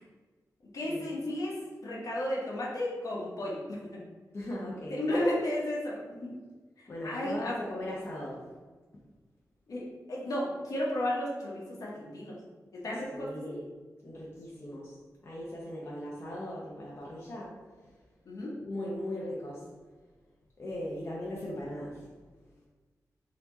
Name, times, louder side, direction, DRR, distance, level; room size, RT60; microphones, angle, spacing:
voice 1, 0.7-4.0 4.9-6.4 6.8-7.6 9.7-12.4 12.7-13.4 18.2-18.5, left 1 dB, 60° left, -5 dB, 1.1 m, -33 dB
voice 2, 4.3-5.0 6.9-8.4 8.9-9.0 13.1-13.7 14.0-15.0 15.2-17.5 17.8-17.9 18.6-19.6 20.6-22.1, left 1 dB, 40° left, -5 dB, 0.7 m, -38 dB
4.2 x 2.9 x 3.9 m, 1.3 s
wide cardioid pair, 150°, 7 cm